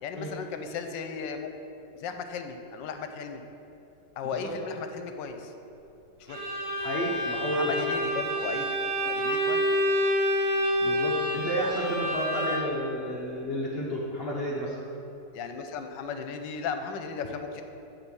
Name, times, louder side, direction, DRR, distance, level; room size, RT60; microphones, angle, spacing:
voice 1, 0.0-1.5 2.0-3.4 4.2-5.5 6.2-6.4 7.5-8.7 9.0-9.7 15.3-17.6, left 5 dB, 80° left, 6 dB, 1.3 m, -36 dB
Bowed string instrument, 6.3-12.9, equal, 55° right, 1.7 m, -28 dB
voice 2, 6.8-7.8 10.8-14.8, equal, 50° left, -4 dB, 0.8 m, -31 dB
10.0 x 3.4 x 6.8 m, 2.9 s
omnidirectional pair, 2.0 m